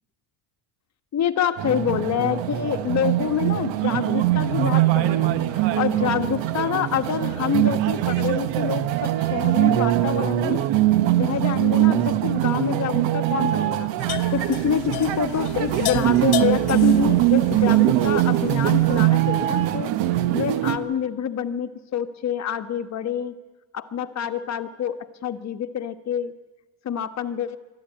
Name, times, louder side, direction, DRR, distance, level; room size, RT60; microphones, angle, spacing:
voice 1, 1.1-10.6 11.1-13.9 14.3-19.9 20.3-23.3 23.7-26.3 26.8-27.6, left 8 dB, 35° left, 8 dB, 1.3 m, -27 dB
sound 1, 1.6-20.8, right 14 dB, 65° right, 1.5 m, -22 dB
sound 2, 14.0-19.1, left 14 dB, 50° left, 1.1 m, -33 dB
22.5 x 13.5 x 9.1 m, 1.1 s
cardioid pair, 130°, 48 cm